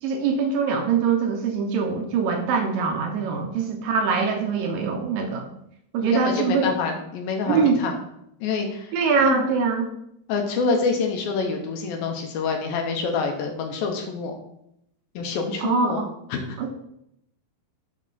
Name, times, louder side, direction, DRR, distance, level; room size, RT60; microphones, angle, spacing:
voice 1, 0.0-5.5 5.9-6.7 7.4-7.8 8.9-9.9 15.6-16.1 16.6-16.7, right 5 dB, 80° right, 4 dB, 2.2 m, -23 dB
voice 2, 6.0-8.0 8.4-8.9 9.2-9.5 10.3-14.4 15.2-16.0 16.3-16.6, left 4 dB, 75° left, 3 dB, 2.6 m, -26 dB
7.2 x 5.3 x 4.1 m, 0.78 s
omnidirectional pair, 4.4 m